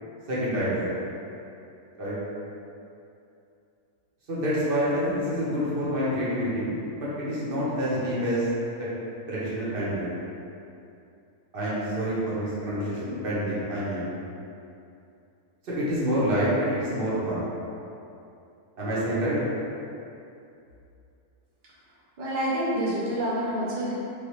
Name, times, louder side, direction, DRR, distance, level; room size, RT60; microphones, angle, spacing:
voice 1, 0.3-0.9 2.0-2.2 4.3-8.5 8.8-8.9 9.3-10.1 11.5-14.1 15.6-17.4 18.8-19.4, equal, 45° right, -9 dB, 0.8 m, -27 dB
voice 2, 22.2-23.9, equal, 85° right, -7 dB, 0.4 m, -27 dB
3.2 x 2.3 x 3.0 m, 2.7 s
omnidirectional pair, 1.6 m